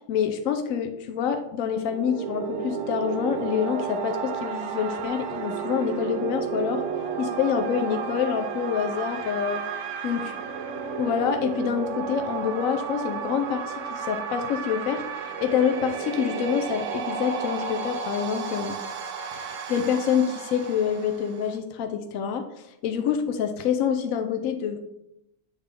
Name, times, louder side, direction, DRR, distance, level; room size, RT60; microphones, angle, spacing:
voice 1, 0.1-6.8 7.2-9.6 10.0-10.3 11.0-18.8 19.4-24.8, left 8 dB, 70° left, 6 dB, 0.9 m, -27 dB
sound 1, 1.7-21.6, right 6 dB, 65° right, 0.9 m, -32 dB
8.0 x 3.6 x 3.4 m, 0.83 s
omnidirectional pair, 1.6 m